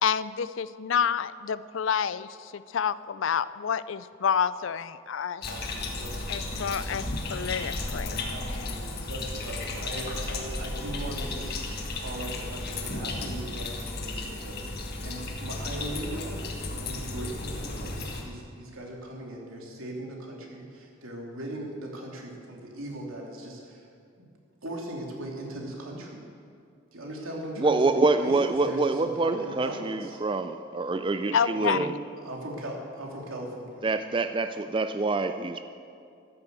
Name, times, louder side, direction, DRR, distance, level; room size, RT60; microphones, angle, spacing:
voice 1, 0.0-5.5 6.3-8.2 31.3-31.8, left 7 dB, 65° left, 16 dB, 0.4 m, -28 dB
sound 1, 5.4-18.2, left 2 dB, 50° left, 1.7 m, -34 dB
voice 2, 5.4-6.7 8.3-11.6 11.9-23.9 24.2-24.3 24.6-26.2 26.9-30.2 31.7-31.9 32.2-33.8, right 1 dB, 85° right, -1 dB, 2.9 m, -39 dB
voice 3, 27.6-31.9 33.8-35.6, right 3 dB, 25° right, 9 dB, 0.4 m, -26 dB
13.0 x 10.5 x 8.0 m, 2.4 s
head